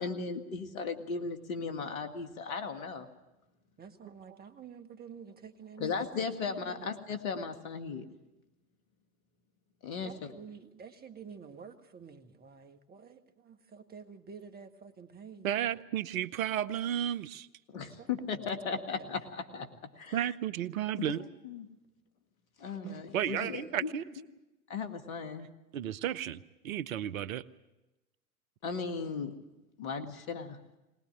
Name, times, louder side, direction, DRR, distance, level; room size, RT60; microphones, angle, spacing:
voice 1, 0.0-3.1 5.8-8.1 9.8-10.1 17.7-19.7 20.0-20.2 21.1-21.7 22.6-23.9 24.7-25.5 28.6-29.4 29.8-30.6, left 5 dB, 65° left, 2.3 m, -36 dB
voice 2, 3.8-6.9 10.0-15.5 17.8-19.2, right 6 dB, 20° right, 1.6 m, -50 dB
voice 3, 15.4-17.5 20.1-21.2 22.8-24.0 25.7-27.4, right 10 dB, 65° right, 0.9 m, -33 dB
20.5 x 20.5 x 9.1 m
figure-of-eight pair, 95°, 45 cm